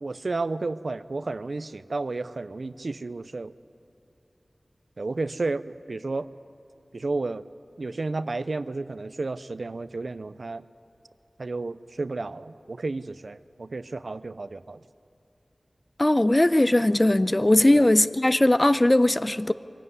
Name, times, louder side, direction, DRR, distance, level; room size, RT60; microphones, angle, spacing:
voice 1, 0.0-3.5 5.0-6.3 6.9-7.4 7.8-10.6 11.4-14.8 17.7-17.9, right 3 dB, 75° right, 15 dB, 0.5 m, -32 dB
voice 2, 16.0-19.5, left 1 dB, 30° left, 14 dB, 0.6 m, -19 dB
23.0 x 16.5 x 9.7 m, 2.8 s
wide cardioid pair, 60°, 0 cm